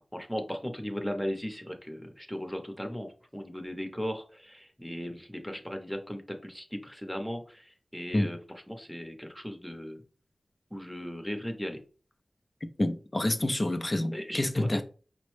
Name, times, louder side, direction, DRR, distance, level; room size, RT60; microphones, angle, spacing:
voice 1, 0.1-3.1 3.3-8.4 8.7-10.0 10.7-11.8 14.1-14.8, equal, 5° left, 0.8 m, -37 dB
voice 2, 12.8-14.8, left 1 dB, 35° left, 0.5 m, -28 dB
5.0 x 2.1 x 3.2 m
cardioid pair, 45°, 0 cm